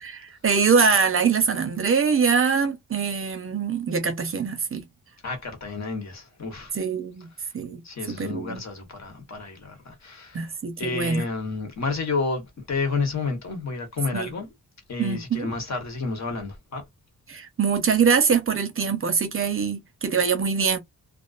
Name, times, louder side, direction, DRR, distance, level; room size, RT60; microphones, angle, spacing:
voice 1, 0.0-4.8 6.7-7.8 8.1-8.6 10.3-11.2 14.1-14.3 15.0-15.5 17.3-20.8, right 6 dB, 40° right, 0.6 m, -23 dB
voice 2, 5.2-6.8 7.8-10.5 10.8-14.5 14.9-16.8, left 4 dB, 50° left, 1.1 m, -30 dB
2.4 x 2.2 x 2.4 m
wide cardioid pair, 115°, 34 cm